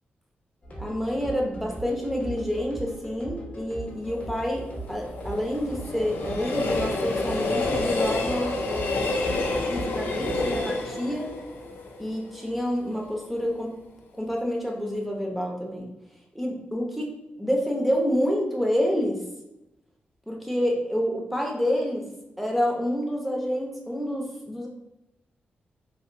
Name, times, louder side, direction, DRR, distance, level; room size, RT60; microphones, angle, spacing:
sound 1, 0.6-10.6, right 1 dB, 40° left, 0.8 m, -39 dB
voice 1, 0.8-9.1 9.7-11.3 12.0-13.7 14.2-15.9 16.3-17.1 17.4-19.2 20.3-22.0 22.4-24.7, equal, ahead, -1 dB, 0.6 m, -28 dB
Train, 4.1-13.2 13.5-13.6, left 2 dB, 85° left, 0.4 m, -29 dB
2.9 x 2.6 x 2.6 m, 0.92 s
wide cardioid pair, 115°, 4 cm